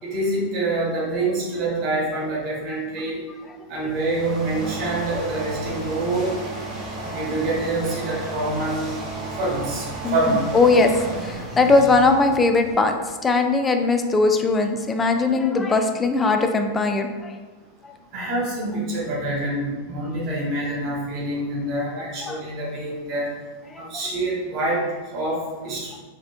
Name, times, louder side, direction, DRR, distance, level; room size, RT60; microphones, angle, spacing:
voice 1, 0.0-3.2 3.7-6.4 7.0-9.0 9.4-9.9 10.1-10.5 18.1-23.3 23.8-24.8 25.1-25.9, right 2 dB, 35° right, -4 dB, 1.3 m, -26 dB
sound 1, 3.7-12.9, right 2 dB, 20° right, 0.9 m, -33 dB
voice 2, 10.0-13.0 13.2-17.3 22.3-22.4, left 3 dB, 15° left, 5 dB, 0.3 m, -20 dB
4.2 x 2.6 x 2.4 m, 1.3 s
figure-of-eight pair, 90°, 0 cm